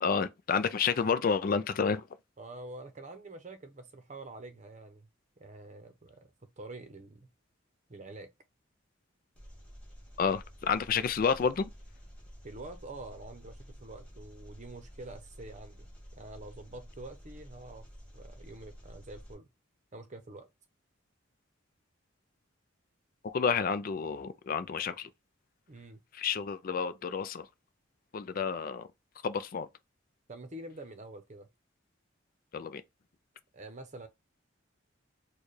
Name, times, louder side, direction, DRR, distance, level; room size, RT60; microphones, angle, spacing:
voice 1, 0.0-2.1 10.2-11.7 23.2-25.1 26.1-27.5 28.1-28.9 29.2-29.7 32.5-32.8, left 6 dB, 45° left, 0.4 m, -30 dB
voice 2, 2.4-5.1 5.4-7.3 7.9-8.3 12.4-17.9 18.1-19.5 19.9-20.5 25.7-26.0 30.3-31.5 33.5-34.1, right 2 dB, 40° right, 0.8 m, -47 dB
Engine, 9.4-19.3, equal, 5° left, 1.7 m, -51 dB
4.4 x 2.3 x 3.2 m
head